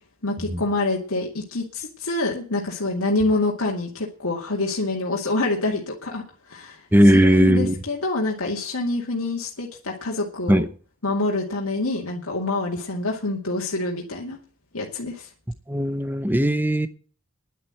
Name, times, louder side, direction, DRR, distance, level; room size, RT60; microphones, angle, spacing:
voice 1, 0.2-6.8 7.1-10.6 11.0-14.4 14.7-15.3, left 2 dB, 85° left, 2.4 m, -26 dB
voice 2, 6.9-7.7 10.5-10.7 15.7-16.9, equal, 10° right, 0.8 m, -17 dB
11.0 x 7.8 x 9.0 m
head